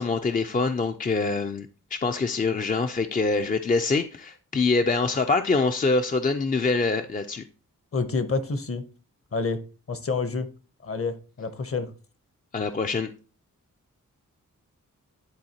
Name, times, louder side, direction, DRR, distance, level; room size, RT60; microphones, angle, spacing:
voice 1, 0.0-7.4 12.5-13.1, left 3 dB, 25° left, 0.4 m, -25 dB
voice 2, 7.9-8.8 9.3-9.6 9.9-10.5 10.8-11.9, left 4 dB, 40° left, 0.8 m, -28 dB
10.5 x 3.8 x 2.8 m
wide cardioid pair, 95°, 33 cm